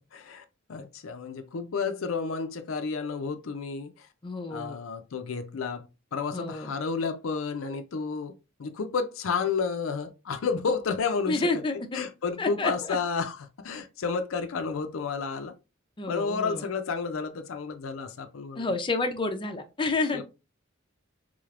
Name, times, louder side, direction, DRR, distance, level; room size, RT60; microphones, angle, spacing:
voice 1, 0.1-4.1 4.5-5.9 6.1-8.3 8.6-11.5 11.9-15.5 16.1-18.7 20.1-20.2, left 5 dB, 70° left, 0.5 m, -31 dB
voice 2, 4.2-4.8 6.3-6.7 11.3-12.0 12.4-13.0 16.0-16.7 18.5-20.2, left 3 dB, 25° left, 0.5 m, -29 dB
3.7 x 3.3 x 2.4 m
head